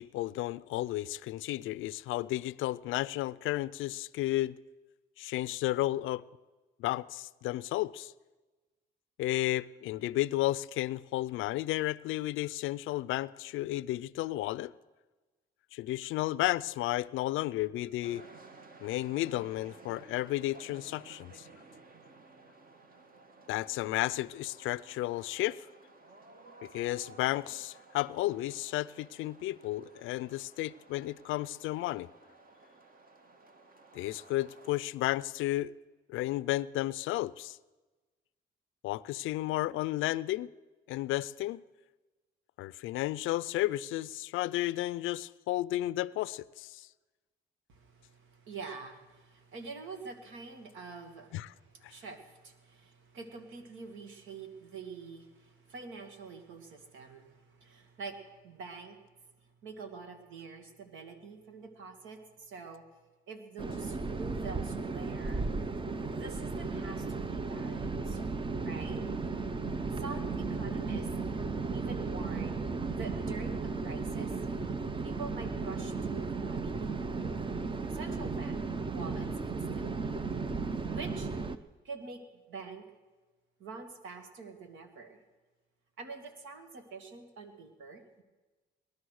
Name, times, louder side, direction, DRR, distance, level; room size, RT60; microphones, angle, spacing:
voice 1, 0.0-4.6 5.2-6.2 6.8-8.1 9.2-14.7 15.7-18.2 18.8-21.5 23.5-25.7 26.6-32.1 33.9-35.7 36.1-37.6 38.8-40.5 40.9-41.6 42.6-46.9 51.3-51.5 51.8-51.9, left 16 dB, 85° left, 0.4 m, -33 dB
sound 1, 18.0-34.8, right 3 dB, 45° right, 1.5 m, -55 dB
voice 2, 47.7-59.0 59.4-62.9 63.3-65.4 66.2-68.2 68.6-69.0 70.0-71.1 71.7-72.7 72.9-74.8 75.0-77.4 77.9-78.6 78.9-80.2 80.9-81.5 81.8-82.2 82.5-82.9 83.6-85.2 86.0-88.2, right 4 dB, 80° right, 1.9 m, -46 dB
sound 2, 63.6-81.6, right 4 dB, 25° right, 0.7 m, -35 dB
19.0 x 12.0 x 6.4 m
cardioid pair, 90°, 20 cm